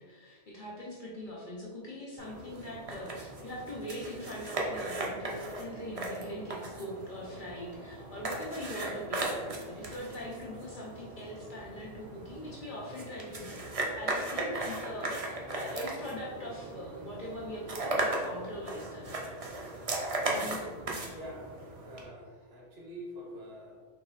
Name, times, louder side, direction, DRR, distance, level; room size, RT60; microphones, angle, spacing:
voice 1, 0.0-19.2 20.2-20.8, left 1 dB, 50° left, -4 dB, 0.7 m, -42 dB
sound 1, 2.2-22.0, right 2 dB, 40° right, 0.5 m, -37 dB
voice 2, 21.0-21.5 21.8-23.9, equal, 55° right, 0 dB, 0.9 m, -45 dB
3.8 x 3.0 x 3.9 m, 1.5 s
omnidirectional pair, 1.3 m